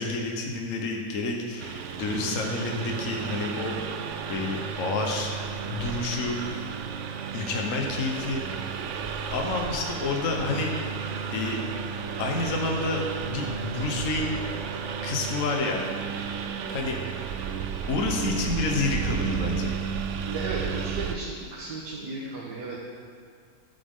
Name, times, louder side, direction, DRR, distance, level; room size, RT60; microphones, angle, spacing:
voice 1, 0.0-3.8 4.3-5.3 5.6-6.7 7.3-8.4 9.3-10.7 11.3-11.6 12.2-14.3 15.0-15.8 16.7-17.5 17.9-19.7, left 3 dB, 55° left, 1 dB, 1.3 m, -29 dB
Engine, 1.6-21.2, right 6 dB, 65° right, 0.8 m, -33 dB
voice 2, 20.3-22.8, right 3 dB, 90° right, -5 dB, 1.8 m, -34 dB
14.0 x 8.0 x 3.7 m, 2.2 s
omnidirectional pair, 1.7 m